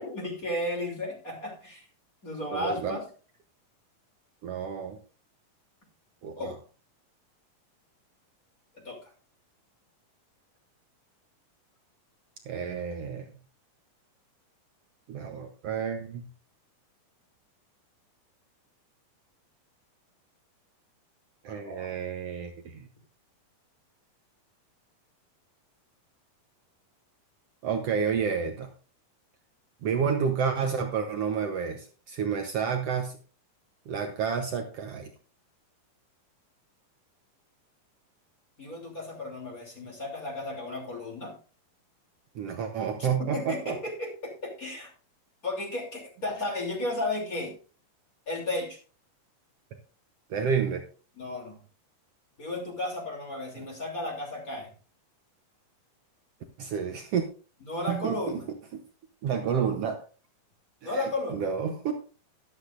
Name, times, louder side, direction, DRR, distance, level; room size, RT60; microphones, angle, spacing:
voice 1, 0.1-1.8 2.2-3.0 6.4-6.5 8.7-9.1 21.5-22.0 38.6-41.3 43.0-44.9 45.4-47.5 48.3-48.8 51.2-51.6 52.4-54.7 57.6-58.5 60.8-61.4, left 2 dB, 25° left, 0 dB, 3.1 m, -34 dB
voice 2, 2.5-3.0 4.4-5.0 6.2-6.5 12.5-13.3 15.1-16.3 21.4-22.9 27.6-28.7 29.8-33.2 33.9-35.1 42.3-43.8 50.3-50.8 56.6-57.2 57.9-58.4 58.7-58.8 59.2-60.0 60.8-61.0 61.3-61.9, right 7 dB, 75° right, 5 dB, 1.4 m, -30 dB
13.0 x 12.0 x 2.5 m, 0.37 s
omnidirectional pair, 4.1 m